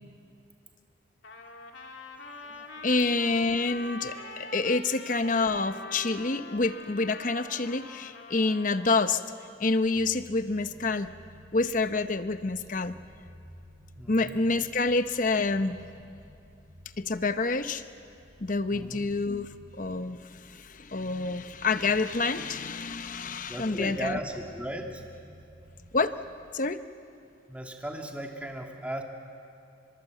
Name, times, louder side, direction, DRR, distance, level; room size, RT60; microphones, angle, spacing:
Trumpet, 1.2-9.0, left 2 dB, 75° left, 2.4 m, -44 dB
voice 1, 2.8-9.2 9.6-11.1 11.5-12.9 14.1-15.8 17.0-17.8 18.4-19.5 19.8-24.2 25.9-26.1 26.5-26.8, left 3 dB, 45° left, 11 dB, 0.9 m, -27 dB
sound 1, 9.9-26.3, equal, 45° right, 4.7 m, -54 dB
voice 2, 14.0-14.4 18.7-19.1 23.5-25.0 27.5-29.0, right 1 dB, 5° right, 1 dB, 2.1 m, -36 dB
29.5 x 22.0 x 8.2 m, 2.5 s
head